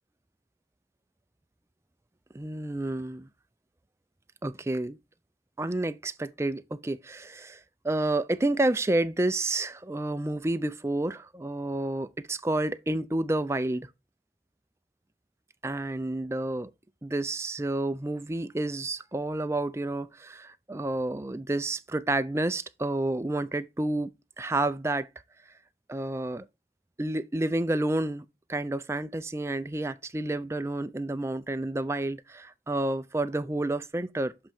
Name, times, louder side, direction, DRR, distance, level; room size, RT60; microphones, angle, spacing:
voice 1, 2.3-3.3 4.4-5.0 5.6-13.9 15.6-16.7 17.0-24.1 24.4-25.1 25.9-26.4 27.0-34.3, right 2 dB, 15° right, 0.4 m, -30 dB
7.7 x 3.0 x 4.3 m
head